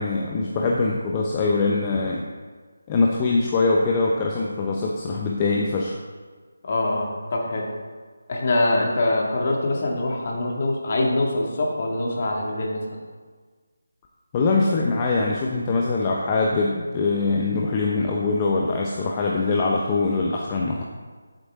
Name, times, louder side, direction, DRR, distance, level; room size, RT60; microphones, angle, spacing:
voice 1, 0.0-2.2 2.9-6.0 14.3-20.8, left 3 dB, 20° left, -2 dB, 0.8 m, -23 dB
voice 2, 6.6-7.7 8.3-12.8, left 2 dB, 40° left, -1 dB, 2.0 m, -24 dB
13.0 x 7.8 x 3.6 m, 1.5 s
figure-of-eight pair, 165°, 0 cm